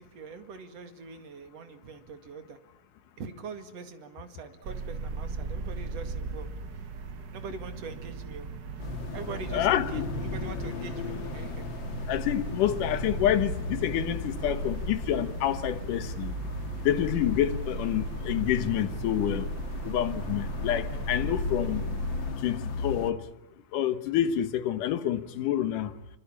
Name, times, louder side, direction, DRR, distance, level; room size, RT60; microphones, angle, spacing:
voice 1, 0.0-2.6 3.2-6.5 7.3-8.5 9.1-11.7, right 5 dB, 50° right, 3.1 m, -43 dB
sound 1, 4.6-22.3, right 4 dB, 70° right, 1.0 m, -37 dB
sound 2, 8.8-23.1, left 4 dB, 45° left, 1.8 m, -36 dB
voice 2, 9.5-10.0 12.1-16.4 16.8-19.5 19.8-21.8 22.4-23.3 23.7-26.0, left 11 dB, 75° left, 2.8 m, -28 dB
26.0 x 24.5 x 8.7 m
omnidirectional pair, 3.8 m